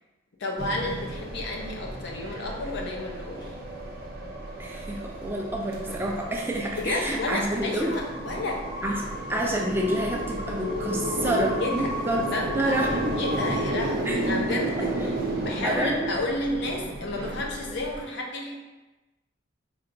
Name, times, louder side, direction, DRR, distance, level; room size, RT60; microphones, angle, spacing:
voice 1, 0.4-3.6 6.8-8.7 11.2-11.9 12.3-18.5, left 2 dB, 60° left, 0 dB, 0.6 m, -32 dB
sound 1, 0.6-18.0, right 1 dB, 55° right, 0.6 m, -32 dB
voice 2, 4.6-8.0 8.8-12.3 12.5-13.4 14.1-14.2 15.6-16.1, right 1 dB, 10° right, 0 dB, 0.3 m, -28 dB
4.4 x 2.8 x 2.5 m, 1.1 s
head